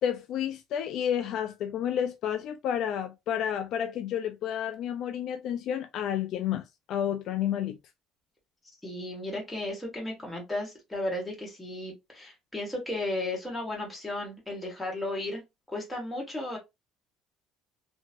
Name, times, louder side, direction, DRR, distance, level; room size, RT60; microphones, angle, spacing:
voice 1, 0.0-7.8, left 9 dB, 50° left, 0.3 m, -30 dB
voice 2, 8.8-15.4 15.7-16.6, left 1 dB, 5° left, 1.4 m, -34 dB
2.9 x 2.7 x 2.5 m
cardioid pair, 155°, 0 cm